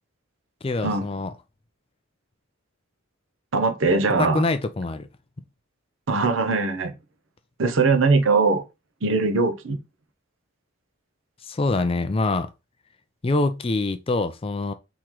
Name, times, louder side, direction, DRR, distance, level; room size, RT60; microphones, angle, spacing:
voice 1, 0.6-1.3 4.2-5.1 11.4-12.5 13.2-14.7, left 2 dB, 25° left, 0.4 m, -25 dB
voice 2, 3.5-4.4 6.1-6.9 7.6-8.6 9.0-9.8, right 3 dB, 65° right, 0.7 m, -21 dB
3.7 x 3.0 x 4.5 m
head